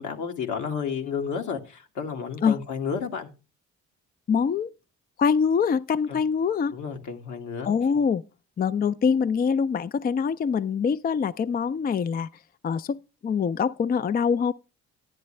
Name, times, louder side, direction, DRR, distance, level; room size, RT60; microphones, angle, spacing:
voice 1, 0.0-3.3 6.7-7.7, left 6 dB, 75° left, 2.0 m, -31 dB
voice 2, 4.3-4.7 5.2-6.7 7.7-8.2 8.6-12.3 12.6-14.5, left 6 dB, 30° left, 0.4 m, -24 dB
10.5 x 10.0 x 3.2 m
cardioid pair, 90°, 30 cm